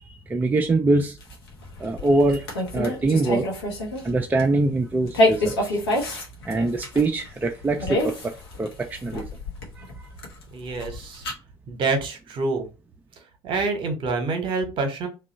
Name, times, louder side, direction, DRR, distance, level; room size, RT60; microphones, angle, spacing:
voice 1, 0.3-1.2 1.8-2.5 2.7-3.5 4.0-5.8 6.4-9.3 9.8-10.1, right 2 dB, 15° right, 0.4 m, -23 dB
sound 1, 1.2-4.1 4.4-4.6 5.1-11.3, left 1 dB, 75° left, 0.8 m, -27 dB
voice 2, 10.5-11.2 11.7-12.7 13.4-15.1, right 3 dB, 40° right, 0.9 m, -26 dB
2.8 x 2.3 x 3.9 m
figure-of-eight pair, 60°, 13 cm